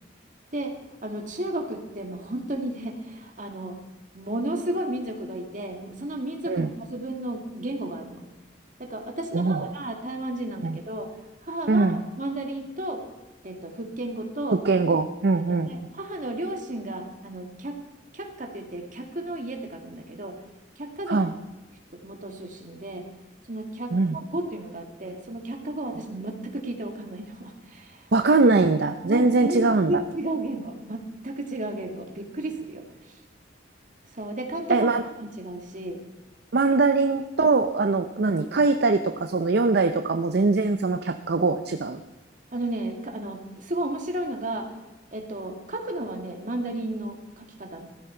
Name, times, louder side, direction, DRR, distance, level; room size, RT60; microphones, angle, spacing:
voice 1, 1.0-3.8 4.1-8.2 8.8-11.1 11.4-13.0 13.4-14.6 15.5-17.8 18.1-20.4 20.8-21.2 22.0-23.1 23.5-28.1 29.0-33.2 34.1-34.9 35.2-36.0 42.5-44.7 45.1-47.9, right 1 dB, 45° right, 2 dB, 2.0 m, -33 dB
voice 2, 9.3-9.7 10.6-10.8 11.7-12.0 14.5-15.7 21.1-21.3 23.9-24.2 28.1-30.0 34.7-35.0 36.5-42.0, right 3 dB, 60° right, 7 dB, 0.6 m, -22 dB
16.0 x 13.0 x 4.5 m, 1.1 s
head